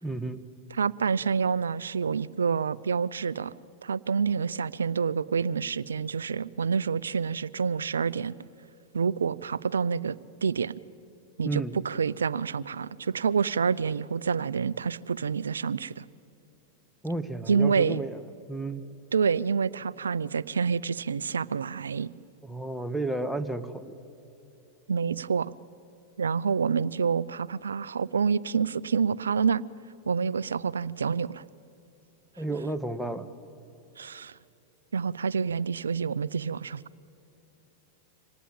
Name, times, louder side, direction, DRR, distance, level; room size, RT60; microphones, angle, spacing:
voice 1, 0.0-0.4 11.4-11.7 17.0-18.2 18.5-18.8 22.4-23.9 32.4-33.3, right 2 dB, ahead, 7 dB, 1.4 m, -32 dB
voice 2, 0.7-3.5 3.8-8.3 8.9-10.7 11.4-16.0 17.5-18.0 19.1-22.1 24.9-25.5 26.2-29.6 30.1-31.4 34.0-34.4 34.9-36.8, right 6 dB, 90° right, 19 dB, 0.5 m, -27 dB
25.5 x 18.5 x 8.9 m, 2.9 s
hypercardioid pair, 105°, 0 cm